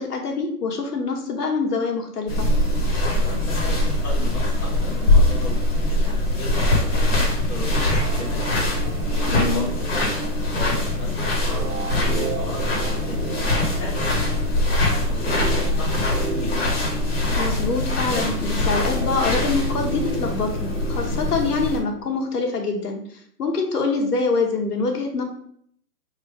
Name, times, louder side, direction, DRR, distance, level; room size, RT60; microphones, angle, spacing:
voice 1, 0.0-2.5 9.3-9.7 17.4-23.0 23.4-25.2, left 4 dB, 75° left, 2 dB, 1.2 m, -25 dB
sound 1, 2.3-21.8, left 1 dB, 40° left, 1.2 m, -22 dB
voice 2, 3.0-5.6 5.9-8.6 9.3-13.4 13.8-16.7, left 1 dB, 5° left, -11 dB, 0.8 m, -36 dB
sound 2, 7.7-22.3, right 5 dB, 60° right, 0.6 m, -36 dB
3.4 x 2.9 x 4.7 m, 0.65 s
hypercardioid pair, 165°, 48 cm